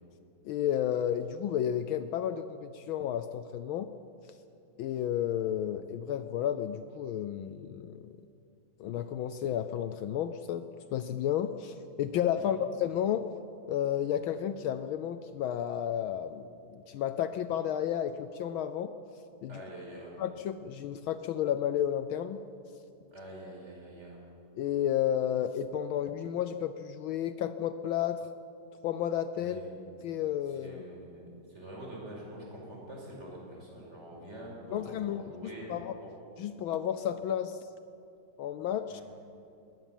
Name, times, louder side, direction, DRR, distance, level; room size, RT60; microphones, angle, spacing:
voice 1, 0.4-3.9 4.8-8.2 8.8-10.7 10.9-13.3 13.7-18.9 19.4-19.5 20.2-22.4 24.6-28.3 28.8-29.6 30.0-30.8 34.7-36.0 36.4-37.6 38.4-39.0, left 10 dB, 75° left, 11 dB, 1.4 m, -32 dB
voice 2, 19.5-20.1 23.1-24.3 29.4-29.7 30.5-35.7 36.0-36.1 38.9-39.0, right 1 dB, 30° right, -2 dB, 5.7 m, -46 dB
21.0 x 17.5 x 7.4 m, 2.7 s
omnidirectional pair, 2.4 m